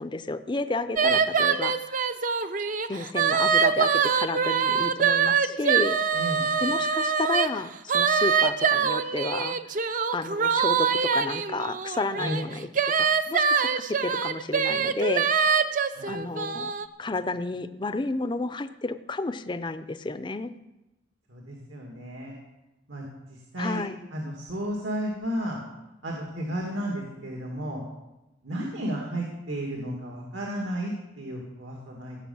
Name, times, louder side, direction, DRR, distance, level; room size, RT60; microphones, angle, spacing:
voice 1, 0.0-2.1 2.9-6.0 6.6-9.6 10.1-12.7 13.0-15.3 16.1-16.7 17.0-20.5 23.6-24.0, left 3 dB, 25° left, 12 dB, 0.5 m, -31 dB
sound 1, 1.0-7.5 7.9-16.9, right 6 dB, 45° right, 0.6 m, -24 dB
voice 2, 6.1-6.5 12.2-12.5 15.9-16.1 21.3-22.3 22.9-23.0 23.3-23.8 24.1-25.6 26.0-27.8 28.4-32.2, equal, 85° right, -1 dB, 2.4 m, -33 dB
16.5 x 6.7 x 7.1 m, 0.98 s
head